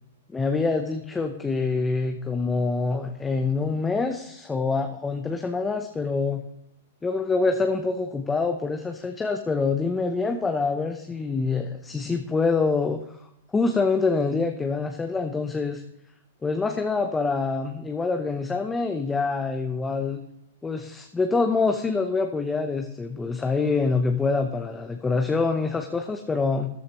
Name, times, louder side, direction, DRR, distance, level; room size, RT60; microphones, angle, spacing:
voice 1, 0.3-6.4 7.0-13.0 13.5-15.8 16.4-20.2 20.6-26.7, left 4 dB, 10° left, 5 dB, 0.7 m, -25 dB
13.5 x 10.5 x 3.0 m, 0.77 s
hypercardioid pair, 130°, 0 cm